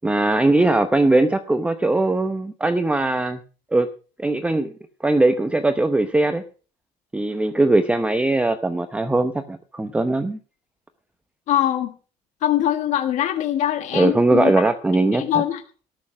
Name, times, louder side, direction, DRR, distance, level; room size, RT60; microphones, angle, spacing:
voice 1, 0.0-3.4 3.7-3.9 4.2-4.7 5.0-6.4 7.1-10.4 13.9-15.2, right 2 dB, 10° right, 9 dB, 0.8 m, -20 dB
voice 2, 11.5-11.9 12.4-14.5 15.1-15.6, left 11 dB, 65° left, 7 dB, 1.4 m, -22 dB
18.5 x 6.5 x 6.1 m, 0.38 s
cardioid pair, 130°, 13 cm